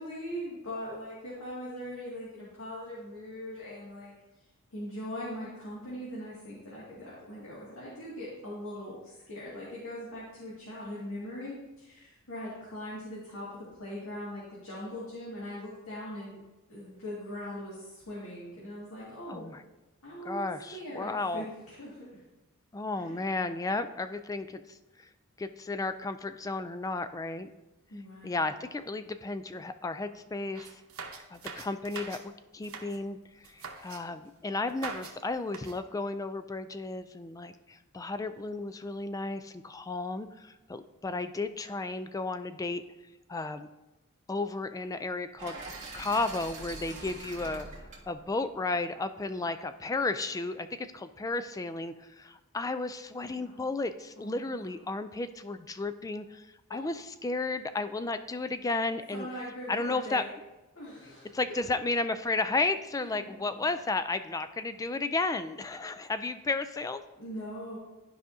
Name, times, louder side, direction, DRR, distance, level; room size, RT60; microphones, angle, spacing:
voice 1, 0.0-4.1 4.7-16.4 16.7-19.5 20.0-22.2 22.9-23.2 27.9-28.5 53.2-53.7 54.2-54.9 56.7-56.8 59.1-60.3 60.8-61.7 63.0-63.6 67.2-67.8, equal, 90° left, -8 dB, 2.0 m, -41 dB
voice 2, 19.3-19.6 20.2-21.4 22.7-25.1 25.4-27.5 28.2-30.7 31.3-33.2 33.5-42.8 43.3-43.7 44.3-45.6 45.9-47.7 48.1-59.3 59.7-60.2 61.3-67.0, left 3 dB, 15° left, 11 dB, 0.3 m, -33 dB
sound 1, 30.5-32.2 32.5-33.0 33.4-34.0 34.7-35.2 35.5-35.8, right 5 dB, 80° right, 0.9 m, -42 dB
sound 2, 45.4-49.4, right 2 dB, 35° right, 1.6 m, -44 dB
13.0 x 4.9 x 2.7 m, 1.0 s
head